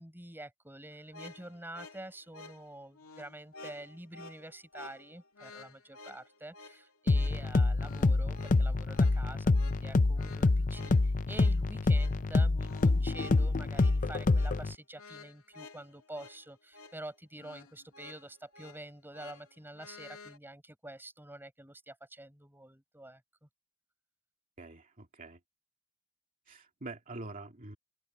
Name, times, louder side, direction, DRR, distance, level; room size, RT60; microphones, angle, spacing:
voice 1, 0.0-23.5, right 1 dB, 10° right, 5.4 m, -47 dB
sound 1, 0.9-20.4, left 3 dB, 75° left, 2.3 m, -52 dB
sound 2, 7.1-14.7, left 3 dB, 35° left, 0.6 m, -27 dB
voice 2, 24.6-25.4 26.5-27.8, right 2 dB, 40° right, 2.4 m, -45 dB
open air
head